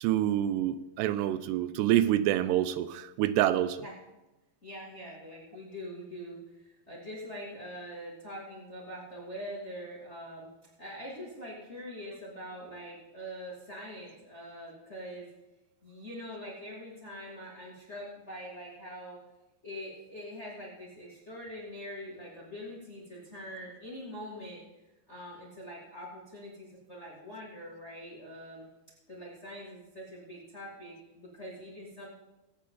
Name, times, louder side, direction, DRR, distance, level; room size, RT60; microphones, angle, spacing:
voice 1, 0.0-3.8, right 12 dB, 85° right, 13 dB, 2.6 m, -27 dB
voice 2, 4.6-10.5 10.8-15.3 15.8-19.2 19.6-24.6 25.1-28.7 29.1-32.1, equal, 25° left, -4 dB, 1.5 m, -43 dB
22.5 x 8.5 x 3.8 m, 1.0 s
omnidirectional pair, 4.8 m